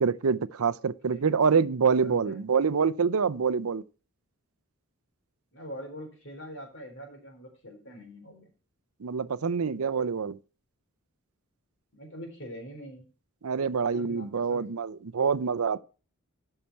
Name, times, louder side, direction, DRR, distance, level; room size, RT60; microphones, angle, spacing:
voice 1, 0.0-3.8 9.0-10.4 13.4-15.8, right 5 dB, 75° right, 0.6 m, -26 dB
voice 2, 1.1-1.5 2.0-2.4 5.5-8.5 11.9-13.1 13.9-14.8, equal, 55° left, 3.9 m, -44 dB
13.0 x 5.8 x 4.6 m
head